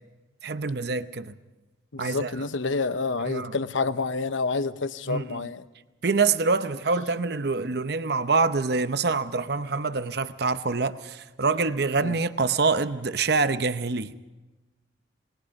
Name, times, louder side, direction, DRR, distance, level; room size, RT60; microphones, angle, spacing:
voice 1, 0.4-1.3 2.0-2.3 3.3-3.5 5.1-5.4 6.0-14.1, right 4 dB, 55° right, 0.7 m, -25 dB
voice 2, 1.9-5.6 12.0-12.2, left 4 dB, 80° left, 0.9 m, -28 dB
27.5 x 20.5 x 5.3 m
head